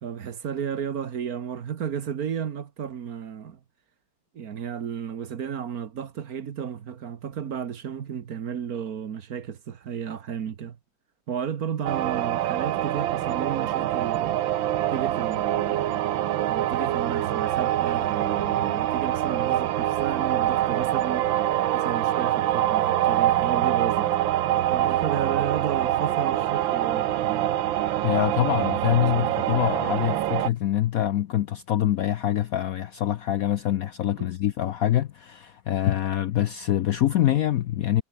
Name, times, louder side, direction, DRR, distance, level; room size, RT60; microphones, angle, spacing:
voice 1, 0.0-3.6 4.3-10.8 11.3-14.4 14.9-16.0 16.5-21.3 21.7-24.1 24.7-27.6 34.2-34.3, right 8 dB, 55° right, 1.5 m, -33 dB
sound 1, 11.8-30.5, right 12 dB, 90° right, 1.7 m, -25 dB
voice 2, 28.0-38.0, left 12 dB, 65° left, 0.9 m, -25 dB
omnidirectional pair, 2.0 m